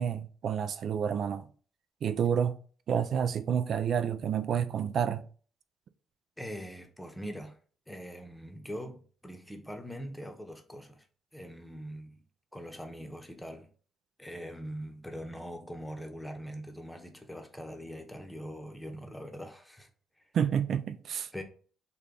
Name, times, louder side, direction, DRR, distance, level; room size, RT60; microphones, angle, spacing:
voice 1, 0.0-1.5 2.0-2.6 2.9-5.3 20.3-21.3, right 8 dB, 65° right, 0.3 m, -29 dB
voice 2, 6.4-7.6 7.9-11.0 11.3-12.2 12.5-13.7 14.2-19.9 21.3-21.4, equal, 5° left, 0.9 m, -42 dB
3.3 x 2.3 x 3.8 m
supercardioid pair, 55°, 0 cm